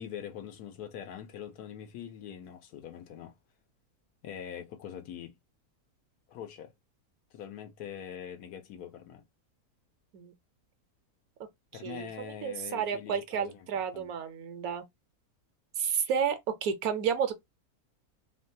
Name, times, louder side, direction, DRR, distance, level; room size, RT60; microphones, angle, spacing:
voice 1, 0.0-3.4 4.2-5.4 6.3-6.7 7.3-9.2 11.7-14.1, left 9 dB, 90° left, 1.2 m, -43 dB
voice 2, 11.8-14.8 15.8-17.3, right 7 dB, 75° right, 1.1 m, -31 dB
3.1 x 2.2 x 2.6 m
omnidirectional pair, 1.6 m